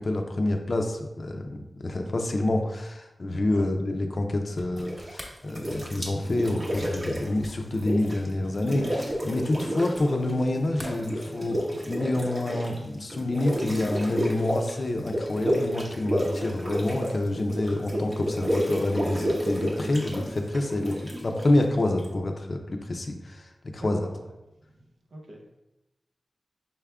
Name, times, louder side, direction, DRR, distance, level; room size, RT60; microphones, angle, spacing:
voice 1, 0.0-23.4 23.7-24.0, left 2 dB, 50° left, 3 dB, 0.4 m, -27 dB
voice 2, 2.4-2.7 3.3-3.7 23.7-24.3 24.7-24.8 25.1-25.6, right 1 dB, 85° right, 0 dB, 0.8 m, -46 dB
sound 1, 4.5-10.5 10.7-11.7, equal, 5° right, 1.0 m, -48 dB
sound 2, 4.8-5.2 5.5-8.3 8.5-10.3 10.5-22.1, equal, 35° right, 0.9 m, -30 dB
5.6 x 3.5 x 2.3 m, 0.94 s
wide cardioid pair, 80°, 0 cm